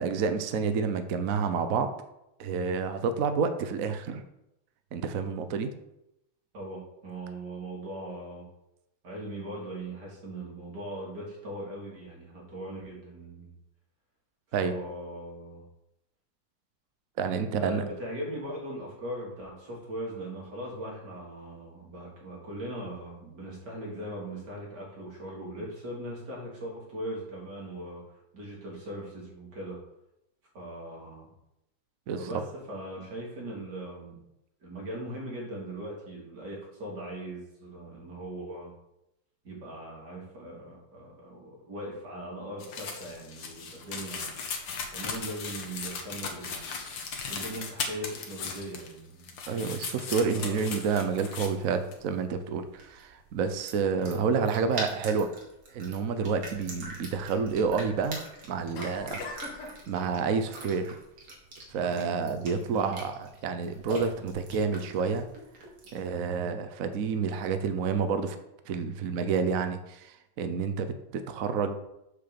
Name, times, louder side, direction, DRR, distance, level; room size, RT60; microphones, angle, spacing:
voice 1, 0.0-1.9 2.4-4.2 4.9-5.7 14.5-14.7 17.2-17.8 32.1-32.4 49.5-55.3 55.7-58.2 58.5-59.2 59.6-61.0 61.7-65.3 65.9-68.4 68.7-71.8, right 5 dB, 75° right, 9 dB, 0.7 m, -29 dB
voice 2, 6.5-8.5 9.0-13.5 14.6-15.6 17.5-28.0 28.3-29.8 30.5-31.3 32.2-32.4 32.7-34.2 34.6-38.7 39.4-44.4 44.9-46.7 47.3-49.3 50.3-50.6 62.7-63.0 64.2-64.3, right 1 dB, 50° right, -3 dB, 3.3 m, -39 dB
sound 1, 42.6-49.0 49.2-51.5 51.9-52.0, left 5 dB, 60° left, 1.9 m, -37 dB
sound 2, 51.8-66.1, right 2 dB, 90° right, 3.0 m, -44 dB
sound 3, 56.2-64.7, left 3 dB, 80° left, 2.2 m, -47 dB
6.6 x 5.9 x 6.9 m, 0.85 s
omnidirectional pair, 2.4 m